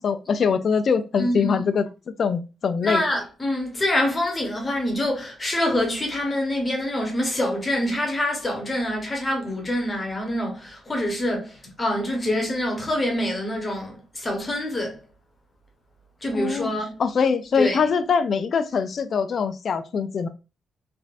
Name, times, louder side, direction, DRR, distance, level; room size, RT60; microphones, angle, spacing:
voice 1, 0.0-1.9 2.2-3.0 16.3-16.7 17.0-20.3, left 6 dB, 45° left, 0.3 m, -23 dB
voice 2, 1.2-1.6 2.8-15.0 16.2-17.0 17.5-17.8, left 1 dB, 20° left, 0.9 m, -26 dB
3.3 x 2.5 x 2.4 m
cardioid pair, 145°, 0 cm